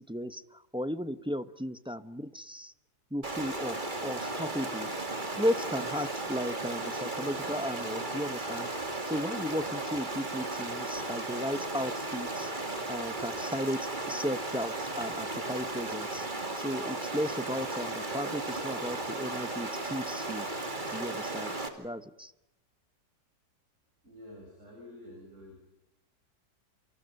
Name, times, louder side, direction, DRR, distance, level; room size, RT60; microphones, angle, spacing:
voice 1, 0.0-2.7 3.1-8.7 9.0-12.5 12.9-16.3 16.5-22.3, equal, 5° right, 12 dB, 0.5 m, -35 dB
Stream, 3.2-21.7, right 2 dB, 25° right, 2.7 m, -35 dB
voice 2, 24.0-25.7, left 1 dB, 45° right, 1 dB, 6.8 m, -49 dB
28.5 x 27.0 x 5.4 m, 0.90 s
omnidirectional pair, 1.9 m